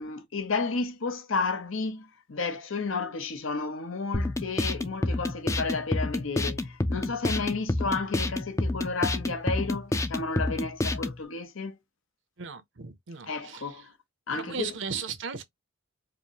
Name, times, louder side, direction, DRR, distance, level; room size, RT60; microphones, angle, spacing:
voice 1, 0.0-11.7 13.3-13.9 14.3-14.7, left 4 dB, 85° left, 0.9 m, -32 dB
sound 1, 4.1-11.2, left 2 dB, 15° left, 0.3 m, -28 dB
voice 2, 12.4-13.8 14.3-15.4, right 5 dB, 70° right, 0.7 m, -36 dB
4.9 x 2.1 x 2.8 m
head